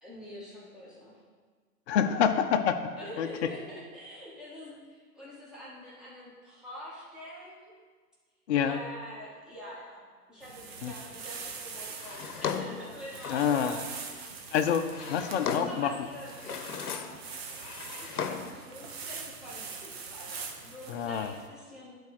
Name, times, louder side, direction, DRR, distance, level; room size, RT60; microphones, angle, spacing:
voice 1, 0.0-1.2 3.0-7.7 8.6-10.0 10.3-14.6 15.0-17.1 18.0-22.0, equal, ahead, -8 dB, 1.6 m, -46 dB
voice 2, 1.9-2.8 3.2-3.5 8.5-8.8 10.8-10.9 13.3-13.8 14.5-15.9 20.9-21.3, left 8 dB, 45° left, 6 dB, 0.6 m, -27 dB
sound 1, 10.4-21.5, right 5 dB, 40° right, 1.0 m, -43 dB
Drawer open or close, 12.0-13.8 14.6-15.9 16.3-17.2 17.5-18.6, left 7 dB, 65° left, 0.9 m, -36 dB
10.5 x 4.3 x 4.8 m, 1.5 s
hypercardioid pair, 130°, 47 cm